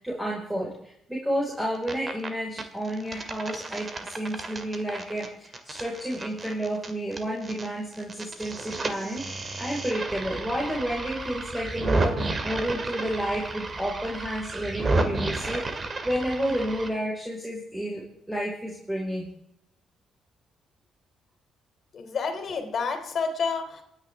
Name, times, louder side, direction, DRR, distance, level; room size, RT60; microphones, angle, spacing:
voice 1, 0.0-19.3, equal, 10° right, -3 dB, 4.6 m, -31 dB
sound 1, 1.6-2.3 2.6-7.7 7.9-16.9, right 2 dB, 35° right, 2.1 m, -32 dB
voice 2, 21.9-23.8, left 5 dB, 55° left, 6 dB, 3.0 m, -29 dB
27.0 x 9.9 x 3.5 m, 0.76 s
cardioid pair, 90°, 0 cm